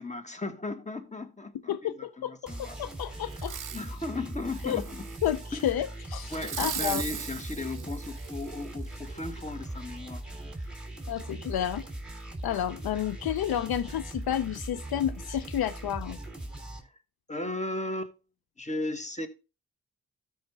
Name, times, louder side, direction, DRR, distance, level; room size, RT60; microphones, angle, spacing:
voice 1, 0.0-2.8 3.2-3.3 3.7-5.1 5.5-5.7 6.3-10.2 17.3-18.1 18.6-19.3, left 2 dB, 20° left, 1.4 m, -36 dB
voice 2, 1.7-2.3 2.6-3.6 4.6-4.8 5.2-7.0 11.1-11.8 12.4-16.2, left 11 dB, 70° left, 0.5 m, -31 dB
sound 1, 2.5-16.8, right 1 dB, ahead, 3.1 m, -40 dB
Fireworks, 3.3-3.9 4.5-5.5 6.3-8.7 9.2-9.3, right 9 dB, 50° right, 0.7 m, -38 dB
13.0 x 5.0 x 3.2 m
supercardioid pair, 45°, 39 cm